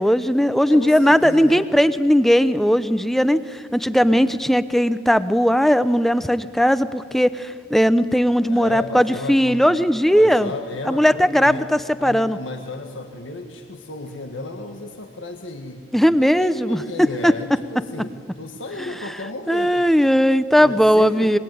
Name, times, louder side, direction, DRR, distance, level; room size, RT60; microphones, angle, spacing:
voice 1, 0.0-10.5 10.9-12.4 15.9-16.8 17.2-17.3 18.8-18.9 19.5-21.4, equal, ahead, 13 dB, 0.7 m, -18 dB
voice 2, 0.7-1.7 4.0-4.4 8.5-9.7 10.1-11.7 12.0-19.9 20.5-21.4, left 2 dB, 85° left, 4 dB, 1.7 m, -33 dB
26.5 x 22.5 x 9.4 m, 2.2 s
head